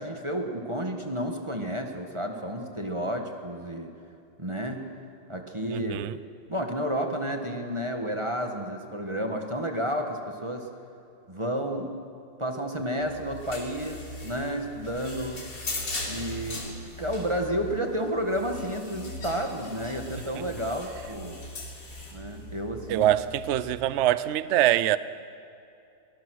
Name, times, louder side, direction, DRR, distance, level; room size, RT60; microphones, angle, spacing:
voice 1, 0.0-3.9 4.4-4.8 5.3-6.0 6.5-10.7 11.3-11.9 12.4-15.4 16.1-21.4 22.1-23.1, equal, 15° right, 3 dB, 1.4 m, -31 dB
voice 2, 5.7-6.1 22.9-25.0, right 13 dB, 75° right, 15 dB, 0.6 m, -24 dB
sound 1, 13.0-23.7, left 2 dB, 75° left, 4.0 m, -39 dB
23.0 x 18.5 x 6.4 m, 2.6 s
omnidirectional pair, 2.0 m